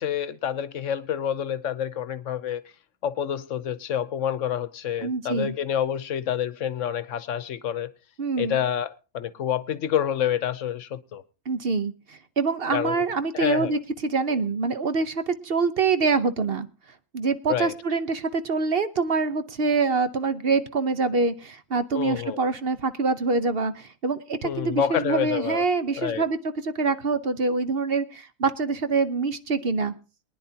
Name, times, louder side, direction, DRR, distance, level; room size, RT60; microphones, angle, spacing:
voice 1, 0.0-2.6 3.0-7.9 8.4-11.2 12.7-13.0 13.3-13.8 14.3-14.4 17.5-17.7 21.9-22.4 24.4-25.6 26.0-26.2, left 9 dB, 70° left, 1.1 m, -28 dB
voice 2, 5.0-5.5 8.2-8.6 11.5-16.7 17.1-26.4 26.6-29.9, right 4 dB, 50° right, 1.0 m, -25 dB
23.0 x 10.0 x 2.8 m
omnidirectional pair, 1.3 m